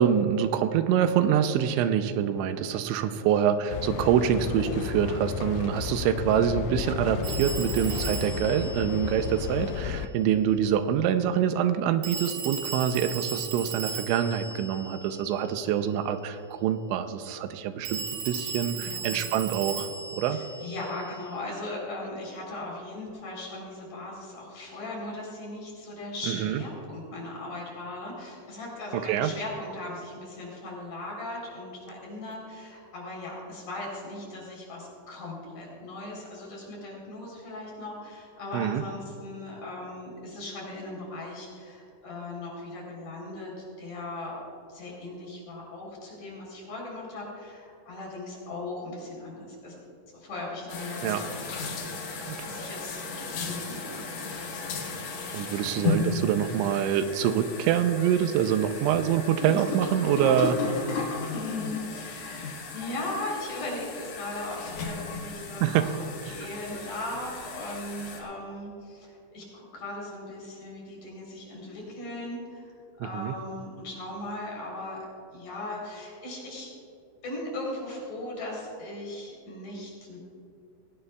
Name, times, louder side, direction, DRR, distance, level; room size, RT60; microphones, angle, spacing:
voice 1, 0.0-20.4 26.3-26.6 28.9-29.3 38.5-38.8 51.0-51.2 52.3-52.4 55.3-60.6 65.6-65.9 66.2-66.3 73.0-73.4, right 9 dB, 85° right, 9 dB, 2.9 m, -25 dB
sound 1, 3.7-10.1, left 8 dB, 90° left, 3.1 m, -33 dB
Telephone, 7.2-9.9 12.0-15.7 17.9-21.3, right 5 dB, 65° right, 3.9 m, -37 dB
voice 2, 18.7-19.2 20.3-44.4 44.7-49.8 50.1-52.1 52.4-54.2 61.3-66.0 66.2-72.7 73.0-75.0 75.3-76.7 77.2-80.2, left 2 dB, 45° left, -3 dB, 4.9 m, -38 dB
sound 2, 50.7-68.2, left 4 dB, 60° left, 3.2 m, -35 dB
19.5 x 17.0 x 2.3 m, 2.7 s
omnidirectional pair, 5.4 m